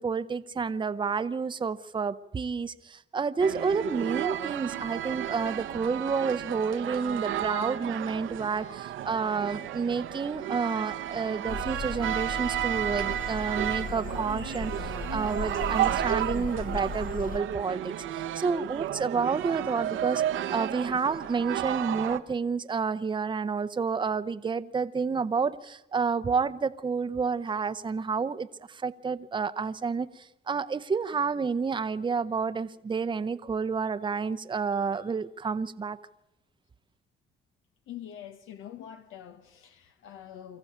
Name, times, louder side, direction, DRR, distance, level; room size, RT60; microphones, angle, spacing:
voice 1, 0.0-20.2 20.5-36.0, right 5 dB, 25° right, 0.7 m, -30 dB
sound 1, 3.4-22.2, right 11 dB, 80° right, 0.9 m, -32 dB
sound 2, 11.5-17.4, left 4 dB, 45° left, 0.9 m, -37 dB
voice 2, 37.9-40.6, left 10 dB, 85° left, 1.0 m, -45 dB
24.5 x 14.0 x 8.6 m
cardioid pair, 90°, 20 cm